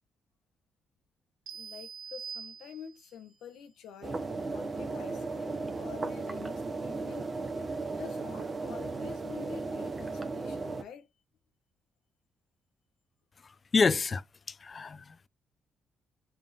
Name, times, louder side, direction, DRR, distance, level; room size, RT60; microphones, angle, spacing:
voice 1, 1.5-7.3 7.9-11.1, left 7 dB, 80° left, 0.8 m, -48 dB
sound 1, 1.5-3.2, right 6 dB, 85° right, 0.5 m, -44 dB
sound 2, 4.0-10.8, right 3 dB, 30° right, 0.7 m, -36 dB
voice 2, 13.7-15.3, left 4 dB, 35° left, 0.4 m, -28 dB
3.5 x 2.5 x 4.0 m
cardioid pair, 90°, 0 cm